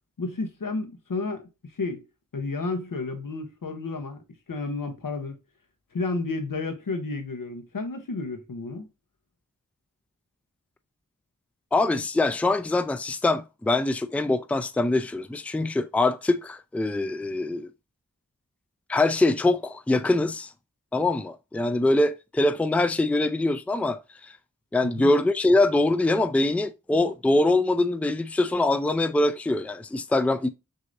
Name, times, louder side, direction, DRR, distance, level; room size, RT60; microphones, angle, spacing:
voice 1, 0.2-2.0 2.3-4.2 4.5-5.4 5.9-8.9 24.8-25.1, left 3 dB, 80° left, 1.0 m, -31 dB
voice 2, 11.7-17.7 18.9-20.5 20.9-24.3 24.7-30.5, left 2 dB, 5° left, 0.4 m, -23 dB
6.3 x 2.7 x 2.6 m
wide cardioid pair, 50°, 32 cm